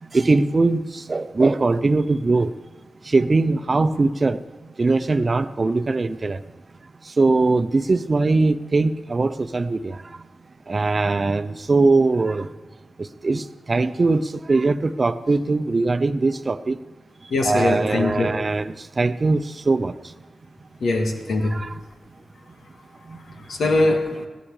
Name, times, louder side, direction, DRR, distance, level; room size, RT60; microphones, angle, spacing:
voice 1, 0.0-2.5 3.0-6.4 7.0-10.3 10.7-12.5 13.0-16.8 17.2-20.1 21.5-21.8 23.0-23.4, right 3 dB, 45° right, 12 dB, 0.8 m, -21 dB
voice 2, 17.3-18.3 20.8-21.6 23.4-24.3, left 2 dB, 75° left, 3 dB, 1.9 m, -22 dB
17.0 x 12.0 x 4.9 m, 1.3 s
cardioid pair, 45°, 0 cm